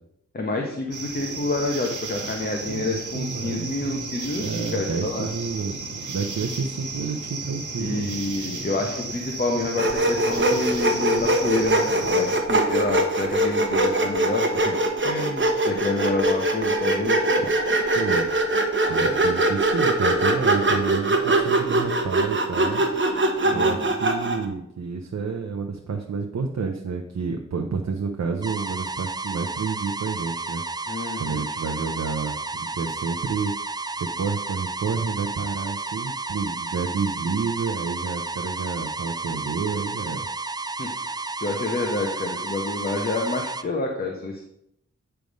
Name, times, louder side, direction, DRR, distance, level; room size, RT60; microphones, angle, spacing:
voice 1, 0.3-5.3 7.8-17.5 19.0-19.2 23.4-24.0 30.9-31.5 40.8-41.1 41.4-44.4, left 2 dB, 35° left, 1 dB, 1.0 m, -28 dB
sound 1, 0.9-12.4, right 3 dB, 85° right, 1.3 m, -34 dB
voice 2, 2.6-4.0 4.4-8.1 17.9-18.3 18.9-22.8 23.5-30.6 31.2-33.5 33.9-40.2, right 5 dB, 65° right, 3 dB, 0.7 m, -29 dB
Sawing, 9.8-24.5, right 1 dB, 40° right, 1.0 m, -22 dB
sound 2, 28.4-43.6, right 3 dB, 15° right, 0.4 m, -32 dB
9.2 x 3.4 x 5.2 m, 0.76 s
wide cardioid pair, 85°, 29 cm